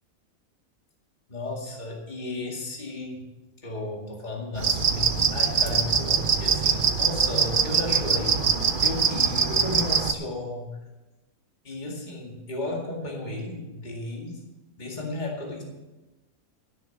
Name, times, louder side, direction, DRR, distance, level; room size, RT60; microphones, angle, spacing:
voice 1, 1.3-3.2 3.6-10.8 11.6-14.4 14.8-15.6, left 2 dB, 30° left, -1 dB, 2.3 m, -34 dB
sound 1, 4.6-10.1, right 6 dB, 45° right, 0.8 m, -23 dB
13.5 x 6.9 x 7.2 m, 1.1 s
omnidirectional pair, 1.5 m